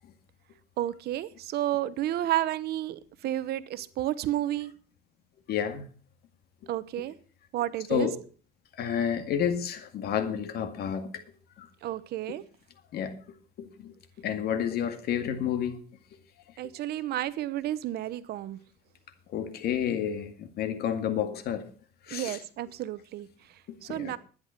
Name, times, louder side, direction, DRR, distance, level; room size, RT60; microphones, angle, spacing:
voice 1, 0.8-4.7 6.7-7.2 7.5-8.1 11.8-12.4 16.6-18.6 22.1-24.2, right 13 dB, 70° right, 0.9 m, -31 dB
voice 2, 5.5-5.8 7.9-8.1 8.8-11.1 11.6-11.7 12.9-13.2 13.6-15.8 19.3-21.6 22.1-22.4 23.9-24.1, left 9 dB, 70° left, 2.1 m, -30 dB
11.5 x 9.8 x 5.8 m
cardioid pair, 110°, 17 cm